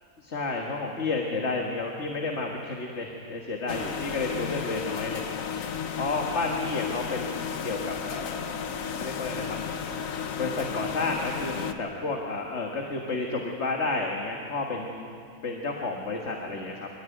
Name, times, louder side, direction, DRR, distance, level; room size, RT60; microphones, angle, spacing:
voice 1, 0.2-5.3 6.0-8.7 9.0-9.6 10.4-16.9, left 3 dB, 50° left, 1 dB, 1.9 m, -31 dB
sound 1, 3.7-11.7, left 7 dB, 70° left, 1.4 m, -33 dB
26.5 x 14.0 x 9.2 m, 2.4 s
omnidirectional pair, 1.5 m